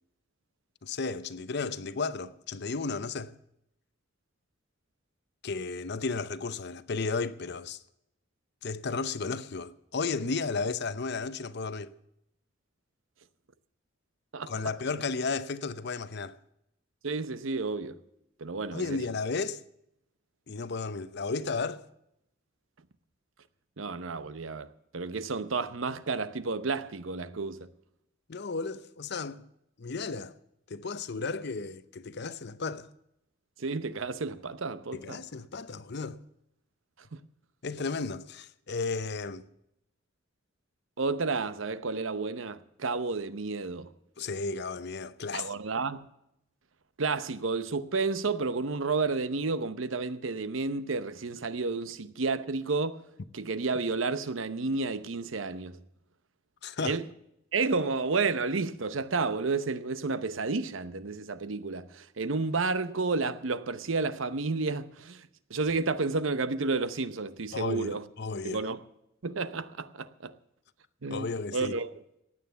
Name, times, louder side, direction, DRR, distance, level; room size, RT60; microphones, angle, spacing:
voice 1, 0.8-3.3 5.4-7.8 8.6-11.9 14.5-16.4 18.7-19.6 20.5-21.8 28.3-29.4 29.8-30.3 30.7-32.9 34.9-36.2 37.6-39.5 44.2-45.5 56.6-57.0 67.5-68.6 71.1-71.7, left 4 dB, 55° left, 0.7 m, -34 dB
voice 2, 17.0-18.0 18.4-19.0 23.8-27.7 33.6-35.2 37.1-37.2 41.0-43.9 45.3-46.0 47.0-53.0 53.3-55.8 56.8-57.1 57.5-68.1 68.4-68.8 69.2-70.4 71.0-71.9, right 4 dB, 80° right, 0.8 m, -31 dB
16.0 x 9.5 x 6.9 m
head